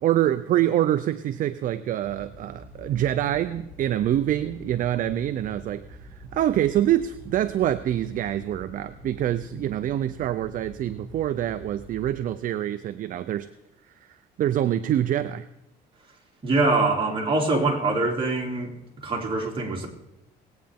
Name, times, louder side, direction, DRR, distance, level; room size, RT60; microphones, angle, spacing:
voice 1, 0.0-13.5 14.4-15.5, right 12 dB, 55° right, 12 dB, 0.5 m, -25 dB
sound 1, 2.0-12.1, left 1 dB, 5° right, 1.9 m, -46 dB
voice 2, 16.4-19.9, right 3 dB, 30° right, 0 dB, 2.7 m, -24 dB
20.0 x 8.8 x 3.6 m, 0.87 s
cardioid pair, 110°, 17 cm